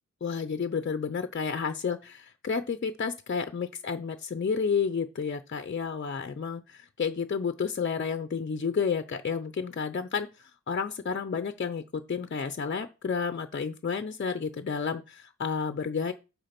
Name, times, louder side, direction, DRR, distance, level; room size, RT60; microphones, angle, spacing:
voice 1, 0.2-16.1, left 6 dB, 40° left, 10 dB, 0.7 m, -31 dB
8.4 x 4.4 x 5.9 m, 0.30 s
wide cardioid pair, 130°, 29 cm